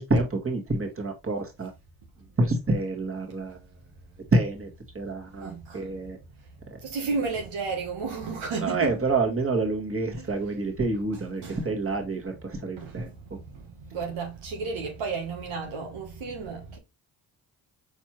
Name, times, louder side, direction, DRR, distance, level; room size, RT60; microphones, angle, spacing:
voice 1, 0.0-1.7 2.4-3.6 4.3-4.7 4.9-6.2 8.6-13.1, right 2 dB, 30° right, 1.8 m, -27 dB
voice 2, 5.3-5.9 6.8-9.0 10.2-10.3 11.4-11.6 12.8-13.0 13.5-16.8, right 4 dB, 80° right, 1.3 m, -33 dB
4.5 x 3.3 x 3.1 m
supercardioid pair, 50°, 46 cm